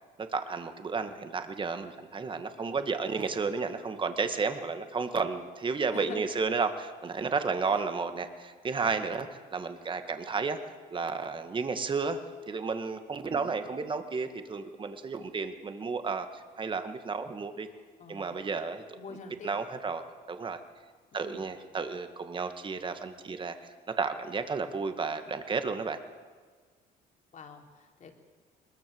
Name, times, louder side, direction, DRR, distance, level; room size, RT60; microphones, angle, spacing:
voice 1, 0.2-12.2 12.5-17.7 18.1-19.0 19.4-20.0 20.3-20.6 21.1-23.6 23.9-26.0, right 4 dB, 30° right, 8 dB, 2.0 m, -32 dB
voice 2, 5.9-6.2 7.7-7.8 13.3-13.5 18.0-18.4 18.9-19.5 21.1-21.4 27.3-28.1, left 5 dB, 45° left, 3 dB, 3.6 m, -46 dB
21.5 x 21.5 x 8.0 m, 1.5 s
cardioid pair, 110°, 17 cm